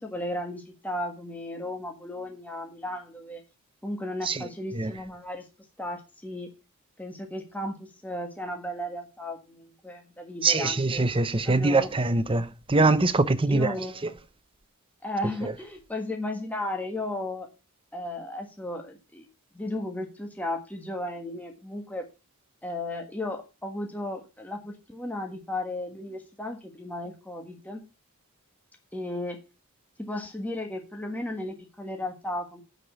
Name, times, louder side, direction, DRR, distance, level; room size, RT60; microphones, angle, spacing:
voice 1, 0.0-3.4 3.8-5.4 5.8-6.5 7.0-11.0 11.4-11.9 13.5-14.2 15.0-17.5 17.9-19.2 19.5-22.0 22.6-27.8 28.9-29.4 30.0-32.6, left 1 dB, 5° left, 1.4 m, -35 dB
voice 2, 10.4-13.7, right 3 dB, 25° right, 0.8 m, -23 dB
9.6 x 5.1 x 7.0 m
head